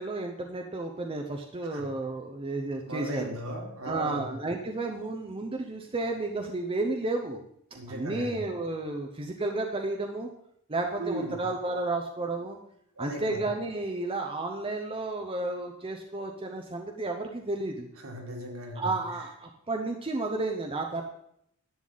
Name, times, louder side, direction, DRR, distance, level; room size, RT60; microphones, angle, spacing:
voice 1, 0.0-3.4 3.8-7.4 7.9-10.3 10.7-12.6 13.0-17.9 18.7-21.0, right 2 dB, 25° right, 2 dB, 0.8 m, -32 dB
voice 2, 2.9-4.3 7.7-8.3 11.0-11.4 13.0-13.4 18.0-18.8, right 1 dB, 65° right, 0 dB, 2.2 m, -36 dB
11.0 x 8.1 x 4.0 m, 0.71 s
head